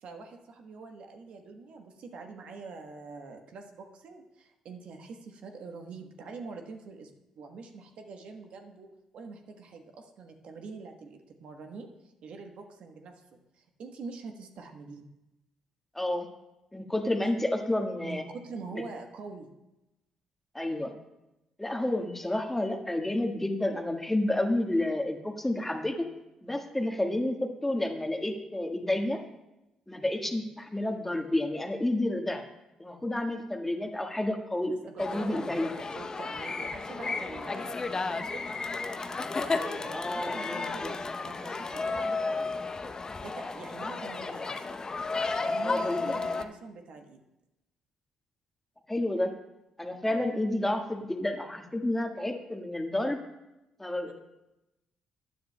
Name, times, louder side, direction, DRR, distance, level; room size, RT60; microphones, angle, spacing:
voice 1, 0.0-8.9 9.1-15.0 18.0-19.5 30.2-30.4 34.7-34.8 35.1-38.5 39.6-42.5 43.2-44.6 45.4-47.2 50.0-50.2 54.0-54.1, right 4 dB, 65° right, 4 dB, 1.1 m, -45 dB
voice 2, 15.9-16.3 16.7-18.2 18.7-18.8 20.5-20.9 21.6-26.1 26.4-29.3 29.9-32.4 32.8-35.8 39.9-41.0 45.6-46.1 48.9-49.3 49.8-53.2 53.8-54.1, left 1 dB, 10° left, 4 dB, 1.4 m, -30 dB
sound 1, 35.0-46.5, left 3 dB, 35° left, 0.7 m, -33 dB
14.5 x 9.4 x 2.2 m, 0.96 s
hypercardioid pair, 50°, 2 cm